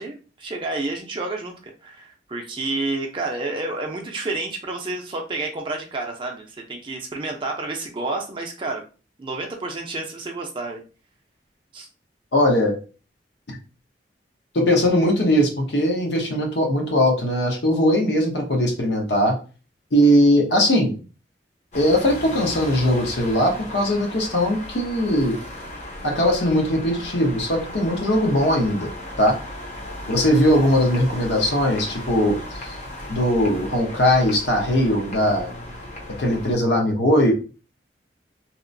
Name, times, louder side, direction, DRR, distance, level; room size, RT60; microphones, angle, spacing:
voice 1, 0.0-8.8 9.2-10.8 11.7-11.9 30.0-30.3, right 2 dB, 30° right, 2 dB, 0.4 m, -30 dB
voice 2, 12.3-12.8 14.5-19.4 19.9-20.9 21.7-25.4 26.0-28.9 29.2-29.4 30.1-32.8 33.1-35.5 36.2-37.3, equal, 80° left, 1 dB, 0.8 m, -20 dB
sound 1, 21.7-36.5, left 1 dB, 40° left, 0.6 m, -36 dB
2.8 x 2.0 x 2.5 m, 0.34 s
head